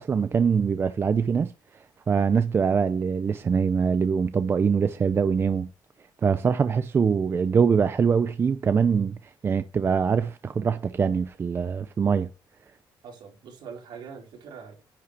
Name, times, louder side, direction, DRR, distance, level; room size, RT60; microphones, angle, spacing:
voice 1, 0.0-1.5 2.1-5.7 6.2-9.2 9.4-12.3, right 6 dB, 30° right, 0.5 m, -23 dB
voice 2, 13.0-14.8, right 6 dB, 75° right, 4.6 m, -43 dB
10.0 x 5.6 x 4.8 m
cardioid pair, 135°, 8 cm